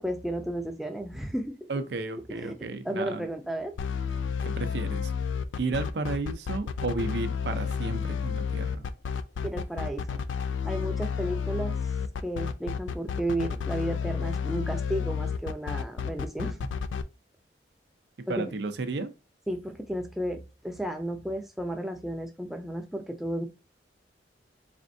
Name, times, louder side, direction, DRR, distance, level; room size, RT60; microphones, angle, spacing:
voice 1, 0.0-1.6 2.3-2.5 2.8-3.8 9.4-10.2 10.6-11.8 12.2-16.6 18.3-18.5 19.5-23.4, right 1 dB, ahead, 0.5 m, -33 dB
voice 2, 1.7-3.3 4.4-5.1 5.6-8.9 18.3-19.1, right 3 dB, 60° right, 0.5 m, -33 dB
sound 1, 3.8-17.0, left 6 dB, 85° left, 0.4 m, -31 dB
4.2 x 3.5 x 2.6 m
head